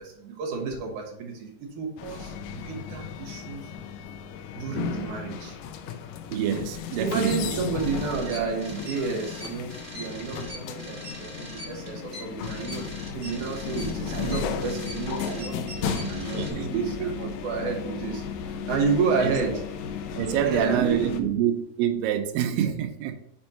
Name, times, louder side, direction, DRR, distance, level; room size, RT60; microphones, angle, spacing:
voice 1, 0.0-3.6 4.5-5.6 7.0-12.9 13.1-19.6 20.3-21.3 22.6-22.7, right 4 dB, 65° right, 2.6 m, -31 dB
sound 1, 2.0-21.2, left 7 dB, 80° left, 2.2 m, -34 dB
voice 2, 6.3-7.6 15.9-17.3 19.2-19.3 20.2-21.5 21.8-23.2, right 10 dB, 90° right, 2.3 m, -27 dB
sound 2, 7.8-16.5, right 1 dB, 45° right, 0.9 m, -42 dB
6.2 x 4.4 x 4.2 m
omnidirectional pair, 4.0 m